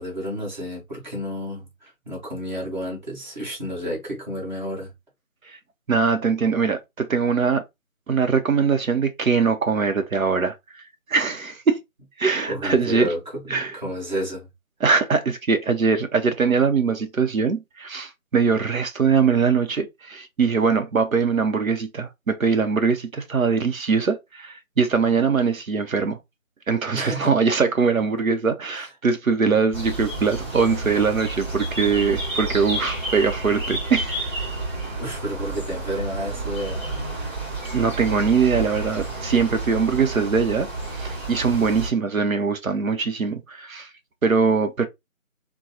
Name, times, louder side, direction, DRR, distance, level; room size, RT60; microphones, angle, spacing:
voice 1, 0.0-4.9 12.5-14.5 26.9-27.3 28.7-28.9 35.0-36.9, equal, 35° right, 1.7 m, -31 dB
voice 2, 5.9-7.6 8.1-10.6 11.1-11.8 12.2-13.1 13.5-13.8 14.8-26.2 26.7-34.1 37.7-43.9 44.2-44.9, right 5 dB, 80° right, 0.9 m, -22 dB
sound 1, 29.7-41.9, right 2 dB, 10° right, 2.3 m, -30 dB
3.8 x 2.3 x 2.8 m
figure-of-eight pair, 165°, 41 cm